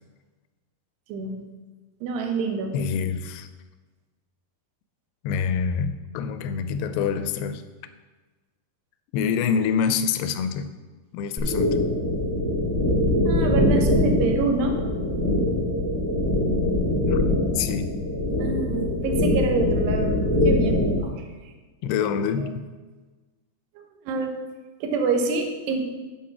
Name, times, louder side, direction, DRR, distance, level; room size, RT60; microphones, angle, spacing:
voice 1, 1.1-1.4 2.0-2.7 13.3-14.8 18.4-20.2 20.4-20.8 23.8-24.3 24.8-25.9, right 4 dB, 90° right, 4 dB, 3.2 m, -26 dB
voice 2, 2.7-3.5 5.2-7.6 9.1-10.7 11.1-11.8 17.1-17.2 17.6-17.9 21.8-22.7, left 6 dB, 85° left, 11 dB, 2.6 m, -26 dB
sound 1, 11.4-21.0, left 1 dB, 40° right, 0.6 m, -23 dB
11.0 x 4.9 x 5.8 m, 1.3 s
omnidirectional pair, 4.7 m